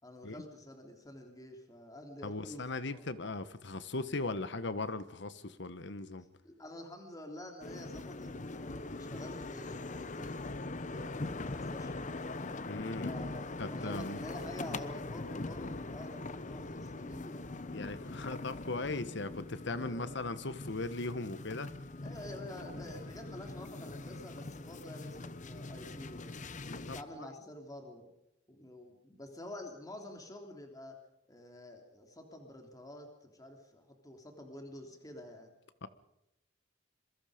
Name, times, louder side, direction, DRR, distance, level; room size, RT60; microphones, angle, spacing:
voice 1, 0.0-2.6 2.9-3.0 6.4-10.5 10.9-12.1 13.0-17.6 19.7-20.3 22.0-26.3 26.9-28.1 28.5-31.0 31.3-35.5, left 1 dB, 20° left, 3 dB, 3.4 m, -48 dB
voice 2, 2.2-6.2 12.6-13.2 13.6-14.2 17.7-21.7 26.6-27.0 35.8-35.9, left 2 dB, 65° left, 13 dB, 1.3 m, -38 dB
sound 1, 7.6-27.0, left 2 dB, 40° left, 1.0 m, -42 dB
27.0 x 23.0 x 5.2 m, 0.84 s
head